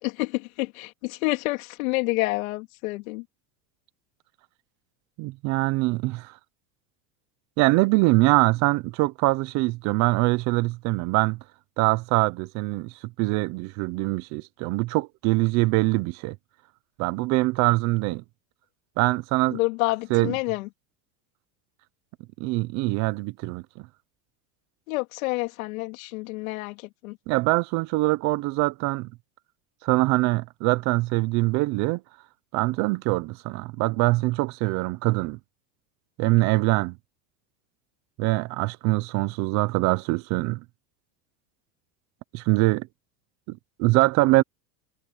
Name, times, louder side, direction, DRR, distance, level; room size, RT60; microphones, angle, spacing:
voice 1, 0.0-3.2 19.5-20.7 24.9-27.2, left 22 dB, 80° left, 3.1 m, -28 dB
voice 2, 5.2-6.3 7.6-11.4 11.8-16.4 17.0-18.2 19.0-19.6 20.1-20.3 22.4-23.9 27.3-29.1 29.8-32.0 32.5-35.4 36.2-37.0 38.2-40.6 42.3-42.9 43.5-44.4, right 22 dB, 40° right, 0.7 m, -23 dB
supercardioid pair, 165°, 41 cm